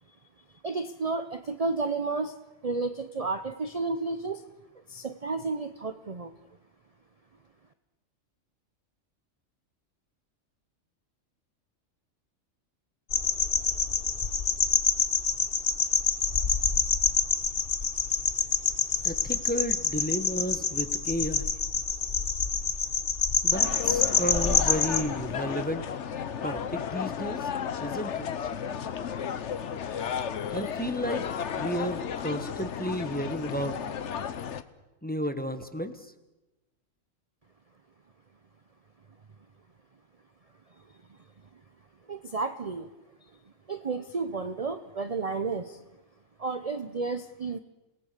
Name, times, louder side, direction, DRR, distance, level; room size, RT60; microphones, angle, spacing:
voice 1, 0.6-2.3 2.6-4.4 4.9-6.3 42.1-42.9 43.7-45.8 46.4-47.6, right 3 dB, 35° right, 9 dB, 0.8 m, -32 dB
sound 1, 13.1-25.0, left 5 dB, 45° left, 1.4 m, -27 dB
voice 2, 19.0-21.5 23.4-25.8 26.4-27.5 27.8-28.3 30.5-31.3 31.6-33.8 35.0-36.0, equal, 5° left, 9 dB, 1.2 m, -32 dB
sound 2, 23.5-34.6, left 8 dB, 65° left, 1.2 m, -33 dB
28.0 x 18.0 x 6.7 m, 1.0 s
omnidirectional pair, 1.3 m